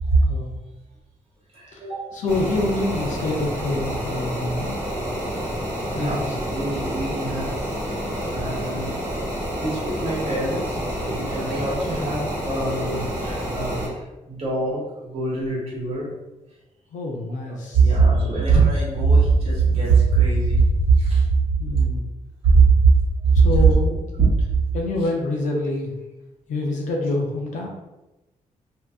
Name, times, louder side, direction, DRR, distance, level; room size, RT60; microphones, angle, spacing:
voice 1, 1.5-2.1 5.9-9.0 9.6-16.1 17.4-21.4 21.7-21.8 22.4-22.9 23.2-23.8 24.2-24.5, right 4 dB, 50° right, -6 dB, 1.3 m, -21 dB
voice 2, 2.1-4.8 5.9-6.4 16.9-17.9 21.6-22.1 23.3-24.0 24.7-25.9 26.5-27.7, left 2 dB, 80° left, 0 dB, 0.5 m, -26 dB
sound 1, 2.3-13.9, equal, 25° right, 1.2 m, -28 dB
2.7 x 2.4 x 3.4 m, 1.0 s
wide cardioid pair, 165°, 13 cm